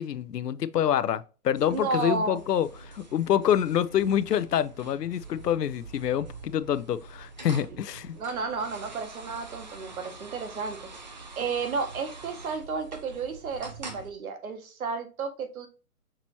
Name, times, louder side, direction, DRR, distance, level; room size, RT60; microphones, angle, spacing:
voice 1, 0.0-8.2, left 10 dB, 85° left, 0.6 m, -26 dB
sound 1, 1.5-14.1, right 3 dB, 30° right, 0.4 m, -45 dB
voice 2, 1.7-2.4 8.1-15.7, right 4 dB, 65° right, 1.2 m, -32 dB
5.9 x 3.0 x 2.8 m
hypercardioid pair, 145°, 46 cm